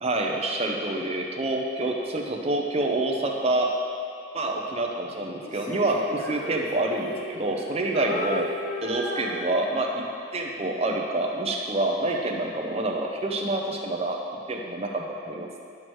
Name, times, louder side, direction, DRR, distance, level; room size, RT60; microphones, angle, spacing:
voice 1, 0.0-3.8 4.3-8.5 8.8-10.1 10.3-14.2 14.5-15.6, right 2 dB, 30° right, 1 dB, 0.6 m, -27 dB
Female singing, 5.4-7.6 7.9-10.0, left 1 dB, 70° left, 1.3 m, -35 dB
10.5 x 6.1 x 3.1 m, 2.5 s
head